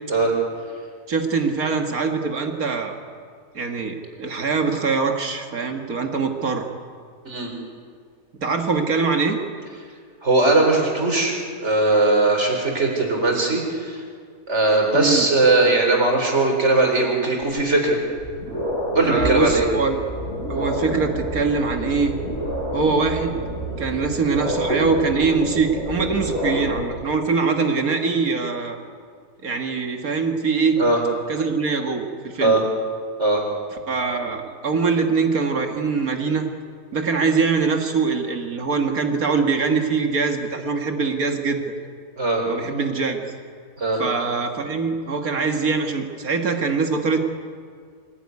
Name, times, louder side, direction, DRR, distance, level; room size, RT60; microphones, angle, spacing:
voice 1, 1.1-3.0 3.5-6.7 8.4-9.4 14.9-15.3 19.1-19.9 20.5-22.1 22.7-23.4 23.8-28.8 29.4-30.8 31.3-32.6 33.9-36.5 36.9-41.6 42.5-43.2 44.0-47.3, right 4 dB, 75° right, 4 dB, 2.2 m, -23 dB
voice 2, 10.2-14.0 14.5-18.0 18.9-19.7 30.8-31.0 32.4-32.6 33.2-33.4 42.2-42.4 43.8-44.0, right 2 dB, 50° right, 2 dB, 4.6 m, -19 dB
sound 1, 18.1-26.8, right 1 dB, 55° left, 8.4 m, -28 dB
25.0 x 17.0 x 9.6 m, 2.1 s
omnidirectional pair, 1.5 m